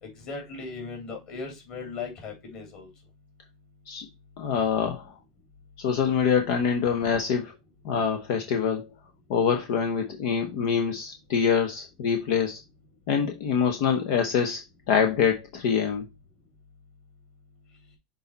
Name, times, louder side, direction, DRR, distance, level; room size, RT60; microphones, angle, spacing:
voice 1, 0.0-2.9, left 4 dB, 35° left, 3.0 m, -38 dB
voice 2, 4.4-5.1 5.8-7.5 7.8-8.9 9.3-12.6 13.1-14.6 14.9-16.1, left 7 dB, 50° left, 1.0 m, -25 dB
6.7 x 4.1 x 4.0 m
supercardioid pair, 165°, 3 cm